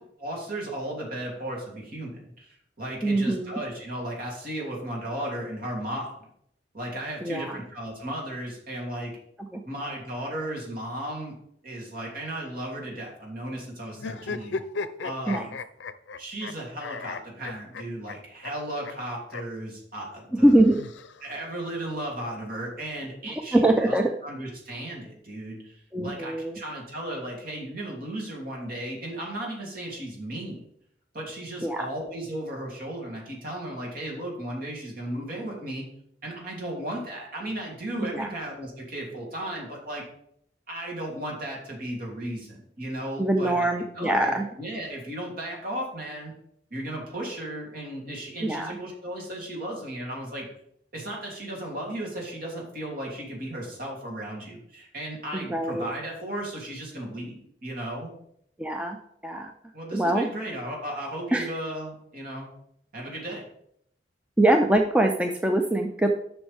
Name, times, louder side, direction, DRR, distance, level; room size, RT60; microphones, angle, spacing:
voice 1, 0.2-6.1 6.7-9.1 9.6-11.4 11.6-14.6 15.0-15.5 16.2-20.6 21.2-24.0 24.2-25.8 26.0-30.6 31.1-35.9 36.2-40.0 40.7-43.6 43.9-46.3 46.7-50.5 50.9-58.1 59.7-62.5 62.9-63.4, right 1 dB, 55° right, -2 dB, 2.9 m, -35 dB
voice 2, 3.0-3.6 7.2-7.6 9.5-9.6 15.3-15.5 20.3-20.8 23.5-24.1 25.9-26.6 31.6-31.9 38.1-38.3 43.2-44.5 48.4-48.8 55.3-55.8 58.6-59.0 59.2-59.5 59.9-60.3 61.3-61.5 64.4-66.1, right 1 dB, 5° right, 3 dB, 0.5 m, -23 dB
sound 1, 14.0-16.5 16.8-18.2 18.4-18.5 18.8-18.9 19.3-19.4 20.5-21.5, left 4 dB, 85° left, 0.5 m, -35 dB
10.5 x 6.2 x 3.5 m, 0.69 s
head